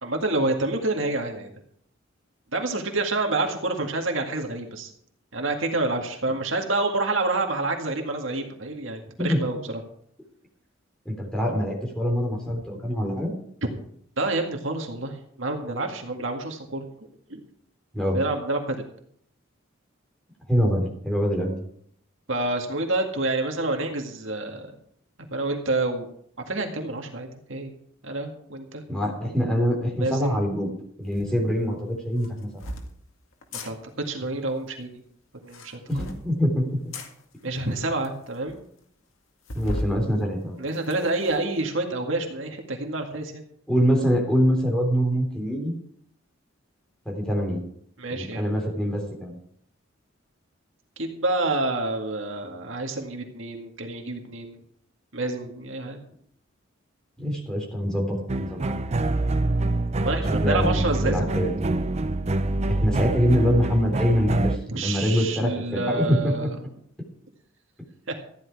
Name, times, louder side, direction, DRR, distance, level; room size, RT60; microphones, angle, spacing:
voice 1, 0.0-1.5 2.5-4.9 5.3-9.8 12.5-12.6 14.2-16.9 17.3-17.4 18.1-18.9 22.3-24.8 25.3-26.1 26.5-27.8 28.0-28.8 30.0-30.4 33.6-33.8 34.0-35.0 35.4-35.8 37.4-38.6 40.6-43.4 48.0-48.4 51.0-54.6 55.1-56.0 60.0-61.4 64.7-66.6 68.1-68.2, right 2 dB, 70° right, 3 dB, 2.0 m, -28 dB
voice 2, 11.1-13.3 17.9-18.2 20.5-21.6 28.9-30.7 31.0-32.6 35.9-36.9 39.5-40.6 43.7-45.7 47.1-47.6 48.1-49.3 57.2-58.6 60.4-61.5 62.7-66.5, equal, 5° left, -1 dB, 3.6 m, -24 dB
sound 1, 31.1-31.3 32.2-32.9 33.4-33.7 35.4-36.2 36.9-37.1 37.8-37.9 38.0-38.1 38.5-38.6 39.5-39.9 40.4-41.4, left 1 dB, 90° left, 2.0 m, -35 dB
sound 2, 58.3-64.6, right 2 dB, 35° right, 0.6 m, -25 dB
14.0 x 10.5 x 4.8 m, 0.65 s
head